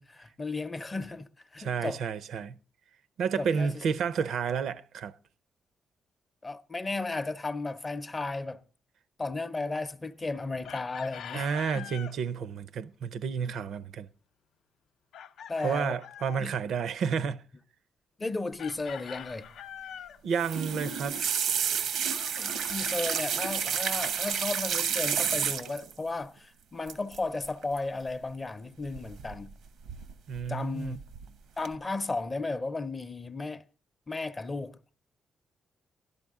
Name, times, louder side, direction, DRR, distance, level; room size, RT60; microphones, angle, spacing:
voice 1, 0.0-2.0 3.4-3.7 6.4-8.6 9.2-11.9 15.5-16.0 16.4-16.6 18.2-19.5 22.4-29.5 30.5-31.0 31.6-33.6 34.1-34.8, left 3 dB, 20° left, 0.6 m, -34 dB
voice 2, 1.6-2.6 3.2-5.1 11.3-14.1 15.6-17.4 20.2-21.2 30.3-31.0, right 6 dB, 70° right, 0.5 m, -31 dB
Chicken rooster, 10.6-12.2 15.1-16.5 18.6-20.2 22.1-23.7, left 9 dB, 80° left, 0.5 m, -44 dB
sound 1, 20.3-25.9 26.9-27.2 27.4-27.8 29.0-29.5 29.9-30.4 30.9-31.3 31.7-31.8, right 7 dB, 90° right, 0.9 m, -30 dB
12.0 x 12.0 x 3.6 m
cardioid pair, 150°, 0 cm